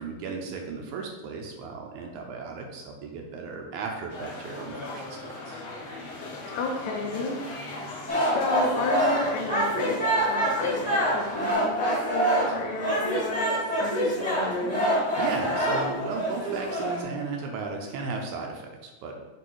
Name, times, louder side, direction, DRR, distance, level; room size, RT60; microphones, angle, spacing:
voice 1, 0.0-5.6 15.2-19.2, right 4 dB, 75° right, 2 dB, 1.9 m, -35 dB
sound 1, 4.1-11.5, left 2 dB, 65° left, 1.8 m, -39 dB
voice 2, 6.6-7.4 8.1-13.5 13.8-14.9, left 3 dB, 80° left, 0 dB, 2.5 m, -32 dB
sound 2, 8.1-17.0, right 1 dB, 5° left, 0.8 m, -26 dB
8.2 x 3.1 x 4.7 m, 1.2 s
omnidirectional pair, 3.9 m